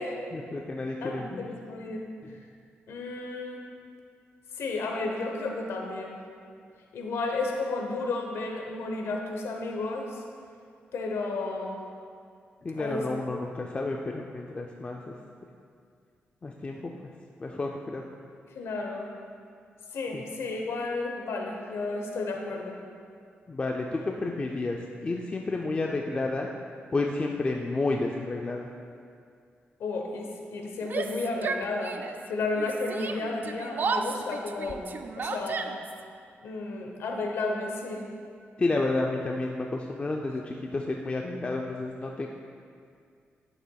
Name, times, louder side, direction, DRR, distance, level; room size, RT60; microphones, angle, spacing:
voice 1, 0.3-1.4 2.2-2.4 12.6-15.1 16.4-17.1 17.4-18.0 20.1-20.2 23.5-26.5 26.9-28.7 38.6-42.3, left 2 dB, 30° left, 1 dB, 0.4 m, -31 dB
voice 2, 1.0-2.1 2.9-3.6 4.5-6.2 6.9-10.2 10.9-11.8 12.8-13.1 18.5-19.1 19.9-22.8 29.8-32.0 32.3-34.9 35.2-35.7 36.4-38.1, left 3 dB, 90° left, 2 dB, 0.9 m, -32 dB
Yell, 30.8-32.3 32.5-36.0, right 4 dB, 50° right, 0.4 m, -33 dB
11.0 x 6.8 x 2.3 m, 2.3 s
cardioid pair, 105°, 4 cm